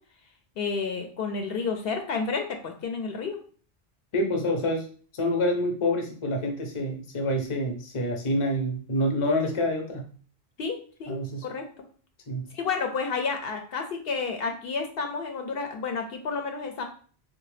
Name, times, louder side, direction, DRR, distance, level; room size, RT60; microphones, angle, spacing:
voice 1, 0.6-3.4 10.6-11.8 12.5-16.8, left 5 dB, 70° left, 4 dB, 0.7 m, -31 dB
voice 2, 4.1-4.9 5.1-10.1 11.1-11.5 12.3-12.5, left 1 dB, 35° left, 2 dB, 0.7 m, -27 dB
3.7 x 2.1 x 3.2 m, 0.43 s
omnidirectional pair, 1.1 m